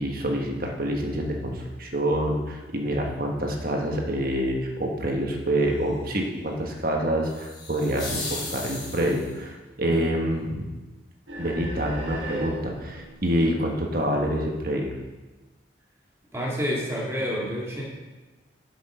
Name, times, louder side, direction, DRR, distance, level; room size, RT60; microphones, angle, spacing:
voice 1, 0.0-10.7 11.4-14.9, right 1 dB, 50° right, 1 dB, 1.4 m, -27 dB
sound 1, 7.2-9.4, left 2 dB, 25° left, 2.5 m, -36 dB
sound 2, 11.3-14.4, right 1 dB, 80° right, 2.3 m, -37 dB
voice 2, 16.3-17.8, equal, 15° right, -4 dB, 2.4 m, -28 dB
11.0 x 6.3 x 5.0 m, 1.2 s
head